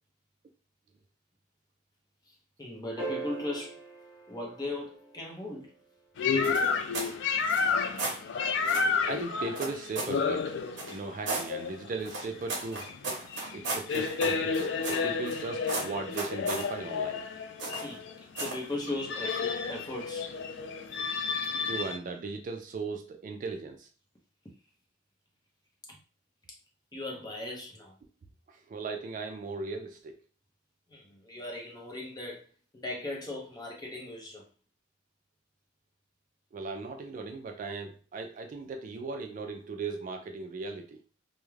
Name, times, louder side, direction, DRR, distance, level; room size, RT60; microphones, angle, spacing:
voice 1, 2.3-3.8 4.3-5.7 17.8-18.0 18.4-20.3 25.9-26.0 26.9-27.9 30.9-32.4 32.7-34.5, left 2 dB, 20° left, -1 dB, 0.6 m, -38 dB
sound 1, 3.0-5.5 7.7-7.8, right 4 dB, 15° right, 0.8 m, -40 dB
sound 2, 6.2-22.0, left 5 dB, 65° left, 0.3 m, -31 dB
sound 3, 6.4-7.1 7.5-8.2 8.7-8.9 9.6-10.2 10.8-11.5 12.0-15.4 15.7-16.7 17.6-18.0 18.4-18.6, right 3 dB, 65° right, 0.8 m, -35 dB
voice 2, 9.1-10.6 10.9-12.9 13.5-17.2 21.6-23.9 28.5-30.1 36.5-41.0, right 3 dB, 45° right, 5 dB, 0.3 m, -37 dB
2.3 x 2.1 x 3.1 m, 0.38 s
head